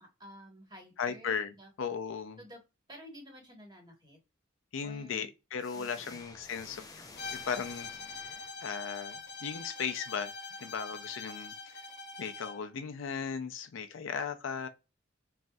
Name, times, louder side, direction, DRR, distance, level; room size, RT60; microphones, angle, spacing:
voice 1, 0.0-1.7 2.4-2.6 2.9-4.2 4.8-5.3 5.7-6.2, equal, 20° right, 1.2 m, -51 dB
voice 2, 1.0-2.4 4.7-10.3 10.6-11.8 12.2-14.7, left 6 dB, 90° left, 0.5 m, -37 dB
sound 1, 5.6-9.0, left 3 dB, 20° left, 0.5 m, -51 dB
Bowed string instrument, 7.2-12.6, left 4 dB, 55° left, 0.7 m, -44 dB
3.2 x 2.6 x 2.2 m
head